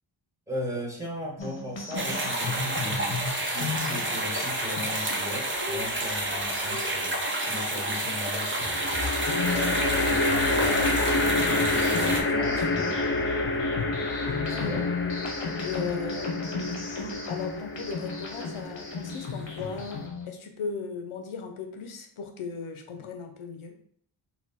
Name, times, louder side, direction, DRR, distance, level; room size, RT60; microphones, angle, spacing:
voice 1, 0.5-8.8 9.5-13.0 14.5-14.8, left 1 dB, 5° right, -3 dB, 1.3 m, -37 dB
sound 1, 1.4-20.3, left 4 dB, 60° left, 1.0 m, -36 dB
sound 2, 1.9-12.2, right 1 dB, 25° right, 0.8 m, -30 dB
sound 3, 5.6-6.2 8.7-20.1, left 2 dB, 25° left, 0.5 m, -29 dB
voice 2, 15.6-16.3 17.3-23.7, left 5 dB, 75° left, 5 dB, 0.7 m, -37 dB
4.1 x 2.2 x 4.1 m, 0.62 s
wide cardioid pair, 95°, 50 cm